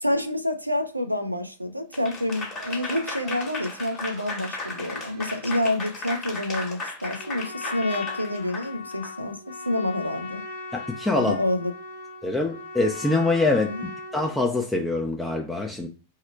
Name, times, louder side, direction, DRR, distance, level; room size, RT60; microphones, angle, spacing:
voice 1, 0.0-10.4 11.1-11.7 13.7-13.8, left 1 dB, 85° right, 0.5 m, -28 dB
Applause / Crowd, 1.9-9.1, left 3 dB, 30° left, 1.2 m, -35 dB
Laughter, 2.5-5.7, right 8 dB, 45° right, 0.8 m, -47 dB
Trumpet, 7.1-14.4, left 4 dB, 60° left, 0.8 m, -38 dB
voice 2, 10.7-11.4 12.2-15.9, left 2 dB, 5° left, 0.5 m, -25 dB
3.7 x 2.1 x 4.4 m
figure-of-eight pair, 90°, 0 cm